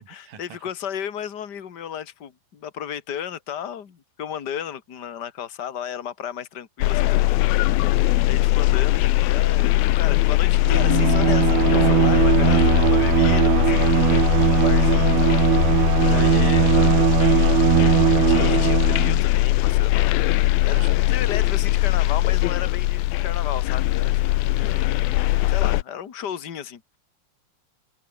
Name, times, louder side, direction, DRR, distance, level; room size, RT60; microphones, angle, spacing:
voice 1, 0.0-7.8 8.2-15.7 16.1-16.8 18.3-20.1 20.6-24.8 25.5-26.8, left 9 dB, 40° left, 1.6 m, -34 dB
sound 1, 6.8-25.8, left 17 dB, 80° left, 2.7 m, -20 dB
Bowed string instrument, 10.7-19.2, right 23 dB, 85° right, 2.4 m, -20 dB
voice 2, 12.4-12.9 16.2-17.7 20.7-21.4 24.6-24.9, right 8 dB, 60° right, 5.0 m, -42 dB
omnidirectional pair, 4.4 m